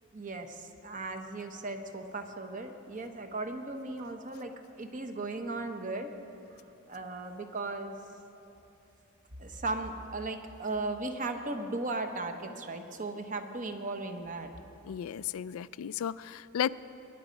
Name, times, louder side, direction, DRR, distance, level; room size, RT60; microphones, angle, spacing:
voice 1, 0.1-6.1 6.5-6.6 6.9-8.0 9.4-14.5, right 2 dB, 40° right, 6 dB, 0.9 m, -37 dB
voice 2, 14.9-16.7, left 9 dB, 85° left, 18 dB, 0.3 m, -34 dB
21.5 x 10.0 x 5.2 m, 2.9 s
head